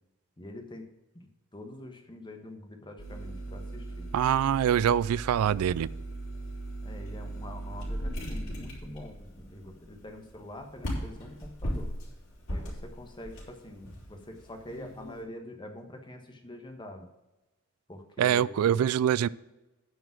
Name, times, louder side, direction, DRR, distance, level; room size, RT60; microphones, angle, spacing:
voice 1, 0.4-4.1 6.8-11.9 12.5-17.1 17.9-18.8, left 1 dB, 20° left, 5 dB, 1.2 m, -45 dB
sound 1, 3.0-15.2, right 1 dB, 65° left, 3.8 m, -38 dB
voice 2, 4.1-5.9 18.2-19.3, right 9 dB, 90° right, 18 dB, 0.3 m, -24 dB
9.5 x 5.1 x 7.4 m, 1.1 s
head